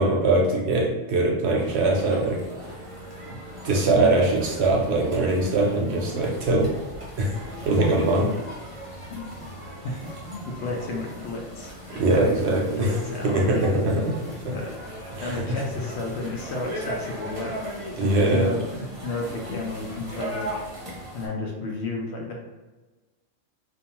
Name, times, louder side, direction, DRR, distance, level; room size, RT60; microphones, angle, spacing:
voice 1, 0.0-2.4 3.6-6.7 7.2-7.4 7.7-8.3 11.9-12.9 13.2-14.5 15.2-15.4 18.0-18.5, right 2 dB, 70° right, -1 dB, 0.8 m, -22 dB
sound 1, 1.6-21.3, equal, 30° right, 0.7 m, -38 dB
voice 2, 9.1-9.5 9.8-13.7 14.5-14.8 15.2-17.6 18.0-20.5 21.1-22.4, left 2 dB, 65° left, -1 dB, 0.8 m, -32 dB
2.5 x 2.3 x 2.8 m, 1.2 s
omnidirectional pair, 1.3 m